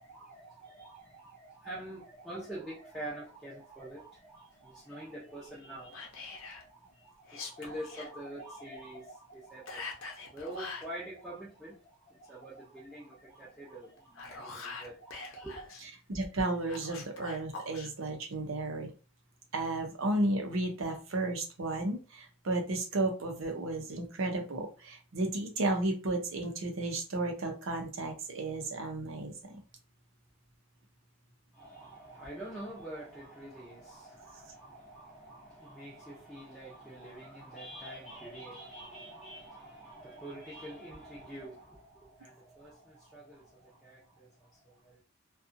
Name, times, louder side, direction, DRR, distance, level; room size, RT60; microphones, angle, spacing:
voice 1, 0.0-11.8 12.1-15.7 31.5-45.0, right 1 dB, ahead, 0.6 m, -46 dB
Whispering, 5.9-6.6 7.2-8.1 9.7-10.9 14.0-15.8 16.7-17.9, left 4 dB, 70° left, 0.7 m, -43 dB
voice 2, 16.1-18.9 19.5-29.6, right 2 dB, 70° right, 0.7 m, -33 dB
2.6 x 2.3 x 2.6 m
head